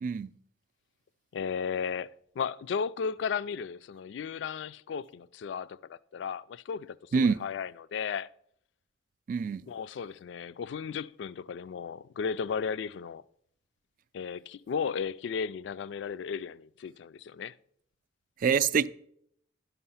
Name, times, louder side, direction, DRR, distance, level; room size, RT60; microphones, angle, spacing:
voice 1, 0.0-0.3 7.1-7.4 9.3-9.6 18.4-18.9, right 6 dB, 45° right, 0.3 m, -25 dB
voice 2, 1.3-8.3 9.7-13.2 14.1-17.5, left 6 dB, 65° left, 0.3 m, -35 dB
11.5 x 5.6 x 5.6 m
head